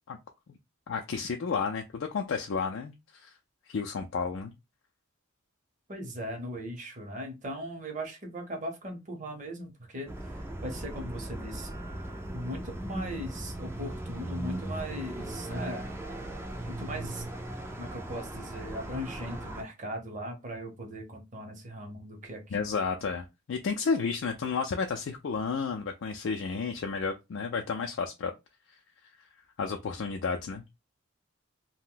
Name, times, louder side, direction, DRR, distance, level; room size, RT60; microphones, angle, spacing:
voice 1, 0.9-3.3 3.7-4.5 22.5-28.3 29.6-30.6, left 5 dB, 60° left, 0.4 m, -32 dB
voice 2, 5.9-10.2 10.6-11.7 12.3-15.9 16.7-17.3 17.8-22.7, equal, 35° right, 0.8 m, -39 dB
sound 1, 10.1-19.6, right 1 dB, 10° right, 0.4 m, -38 dB
2.5 x 2.1 x 3.7 m
head